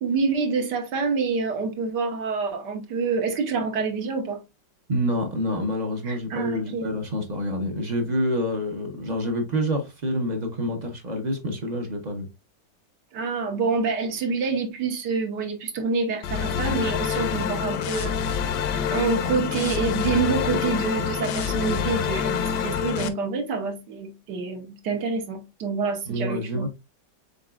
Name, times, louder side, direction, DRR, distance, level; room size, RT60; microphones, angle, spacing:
voice 1, 0.0-4.4 6.0-7.0 13.1-18.1 18.9-26.7, right 4 dB, 75° right, 1.5 m, -27 dB
voice 2, 4.9-12.3 26.1-26.7, equal, 45° right, 0.5 m, -27 dB
sound 1, 16.2-23.1, left 7 dB, 75° left, 1.2 m, -26 dB
5.3 x 3.8 x 2.3 m
omnidirectional pair, 1.9 m